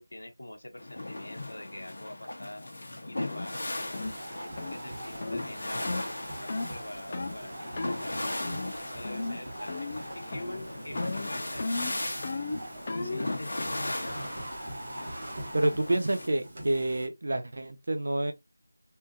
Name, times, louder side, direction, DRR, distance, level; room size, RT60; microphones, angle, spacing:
voice 1, 0.0-2.6 3.1-3.9 4.3-8.4 8.8-12.2 12.9-14.4, left 1 dB, 90° left, 0.8 m, -45 dB
sound 1, 0.8-16.3, left 1 dB, 50° left, 1.0 m, -38 dB
sound 2, 3.3-3.5 3.9-4.2 4.6-4.8 5.2-5.4 5.8-6.1 6.5-6.7 7.1-7.4 7.8-8.0 8.4-8.8 9.0-9.4 9.7-10.1 10.3-10.7 11.0-13.3, left 3 dB, 25° left, 0.4 m, -35 dB
sound 3, 3.4-17.1, right 1 dB, 30° right, 1.1 m, -43 dB
voice 2, 15.5-18.3, right 1 dB, 50° right, 0.6 m, -28 dB
3.6 x 2.7 x 2.3 m
figure-of-eight pair, 175°, 0 cm